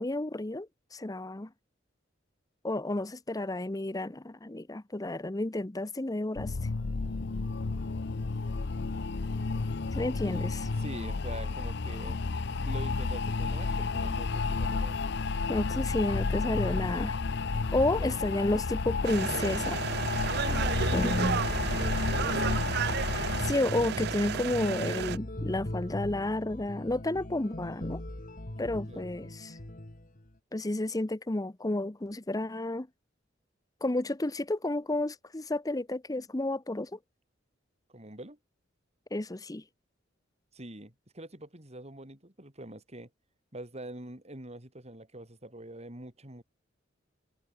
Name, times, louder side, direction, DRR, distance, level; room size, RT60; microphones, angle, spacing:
voice 1, 0.0-1.5 2.6-6.7 9.9-10.7 15.5-17.2 17.7-19.8 20.9-21.4 23.1-28.0 28.6-29.6 30.5-32.9 33.8-37.0 39.1-39.6, left 1 dB, 20° left, 0.8 m, -31 dB
sound 1, 6.4-23.5, left 4 dB, 60° left, 0.7 m, -31 dB
voice 2, 10.8-12.2 12.6-15.0 17.9-18.2 20.4-22.6 28.9-29.1 37.9-38.4 40.5-43.1 43.5-46.4, right 1 dB, 35° right, 4.7 m, -45 dB
sound 2, 19.0-25.2, right 8 dB, 60° right, 0.4 m, -33 dB
sound 3, 20.7-30.3, left 1 dB, 45° left, 2.3 m, -39 dB
head